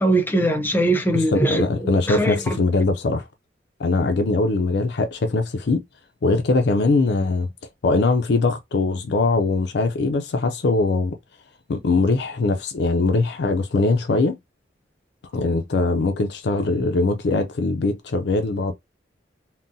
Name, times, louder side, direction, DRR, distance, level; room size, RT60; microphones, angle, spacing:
voice 1, 0.0-2.6, right 1 dB, 10° left, 0.5 m, -21 dB
voice 2, 1.1-3.3 3.8-5.8 6.2-7.5 7.8-11.1 11.7-14.4 15.3-18.7, left 3 dB, 65° left, 0.4 m, -21 dB
3.7 x 2.1 x 2.6 m
head